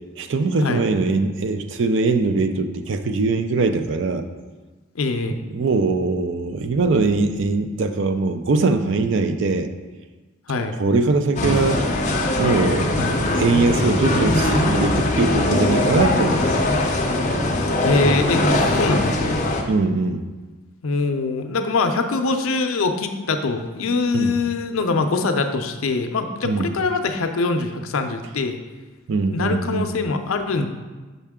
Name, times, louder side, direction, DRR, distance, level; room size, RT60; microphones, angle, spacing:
voice 1, 0.2-4.2 5.5-9.7 10.8-11.8 12.4-13.0 13.4-16.6 19.7-20.2 24.1-24.3 26.4-26.6 29.1-29.9, right 3 dB, 55° right, 8 dB, 0.4 m, -21 dB
voice 2, 4.9-5.4 10.5-10.8 13.0-13.2 17.8-19.4 20.8-28.6 29.3-30.7, left 3 dB, 75° left, 6 dB, 0.5 m, -23 dB
sound 1, 11.4-19.6, left 1 dB, 35° left, 0.6 m, -21 dB
5.8 x 5.5 x 3.6 m, 1.3 s
head